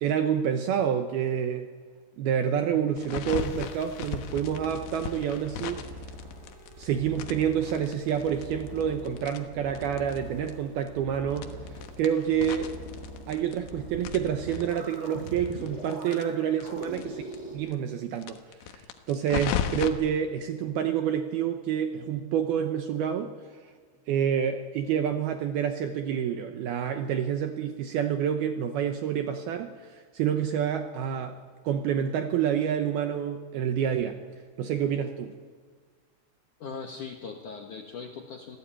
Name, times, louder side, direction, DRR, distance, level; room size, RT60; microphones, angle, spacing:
voice 1, 0.0-1.7 2.2-5.8 6.8-11.5 12.0-12.7 13.3-17.2 17.5-18.4 18.6-23.3 24.1-34.2 34.6-35.3, right 8 dB, 75° right, 6 dB, 2.4 m, -28 dB
sound 1, 3.0-6.8 7.2-10.2 10.5-10.6 10.8-10.9 11.3-13.7 14.0-17.0 17.3-17.4 17.7-17.8 18.2-19.9, left 9 dB, 85° left, 3.9 m, -36 dB
sound 2, 3.2-17.6, equal, 15° right, 5.5 m, -43 dB
voice 2, 36.6-38.6, left 5 dB, 65° left, 3 dB, 2.0 m, -39 dB
27.0 x 16.5 x 8.9 m, 1.5 s
omnidirectional pair, 5.5 m